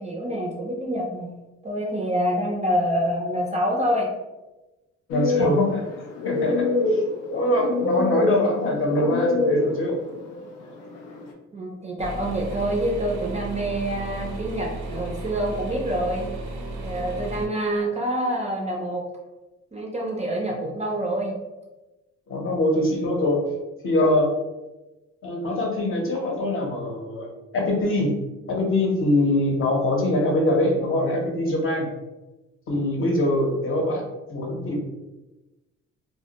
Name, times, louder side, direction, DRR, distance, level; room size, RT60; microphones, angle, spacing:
voice 1, 0.0-1.3 1.6-4.1 11.5-16.3 16.7-19.1 19.7-21.3, equal, 25° right, -1 dB, 0.4 m, -26 dB
sound 1, 5.1-11.3, left 2 dB, 85° left, 0.5 m, -25 dB
voice 2, 5.1-5.8 6.2-7.0 7.3-10.0 17.1-17.4 22.3-23.4 23.8-24.3 25.2-27.3 27.5-28.2 28.5-31.9 32.7-34.0 34.3-34.8, left 1 dB, 45° left, 0 dB, 0.7 m, -23 dB
sound 2, 12.0-17.5, right 2 dB, 80° right, 0.5 m, -34 dB
2.1 x 2.1 x 2.8 m, 1.1 s
cardioid pair, 90°, 30 cm